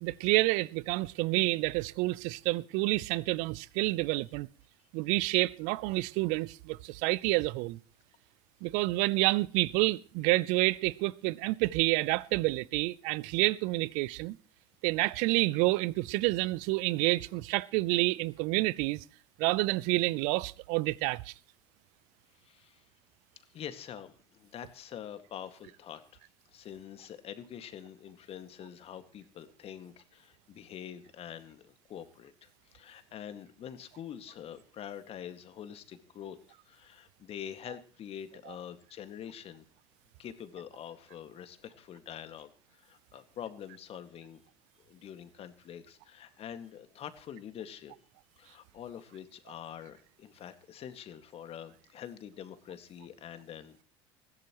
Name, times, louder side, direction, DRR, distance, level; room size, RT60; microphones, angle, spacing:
voice 1, 0.0-4.5 4.9-7.8 8.6-14.4 14.8-19.0 19.4-21.3, right 21 dB, 65° right, 0.7 m, -28 dB
voice 2, 22.3-22.8 23.5-39.6 40.2-44.4 44.8-47.9 48.4-53.8, left 9 dB, 45° left, 2.0 m, -45 dB
21.0 x 16.0 x 3.1 m
hypercardioid pair, 70°, 14 cm